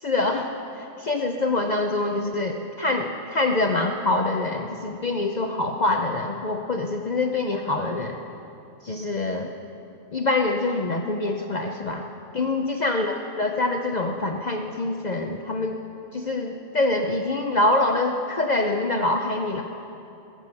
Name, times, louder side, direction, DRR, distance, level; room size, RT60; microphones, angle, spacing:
voice 1, 0.0-0.5 0.8-8.2 8.8-9.5 10.1-12.0 12.3-15.8 16.1-19.6, left 2 dB, 45° left, 4 dB, 0.6 m, -25 dB
20.5 x 7.4 x 6.9 m, 2.8 s
omnidirectional pair, 1.3 m